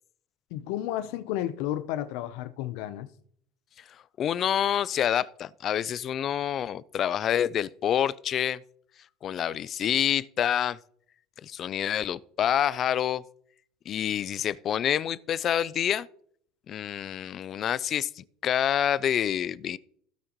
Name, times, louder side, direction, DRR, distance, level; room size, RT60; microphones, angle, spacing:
voice 1, 0.5-3.1, left 13 dB, 80° left, 0.7 m, -32 dB
voice 2, 4.2-8.6 9.2-10.8 11.4-13.2 13.9-16.1 16.7-19.8, left 10 dB, 45° left, 0.4 m, -27 dB
16.5 x 6.4 x 3.0 m
cardioid pair, 125°, 0 cm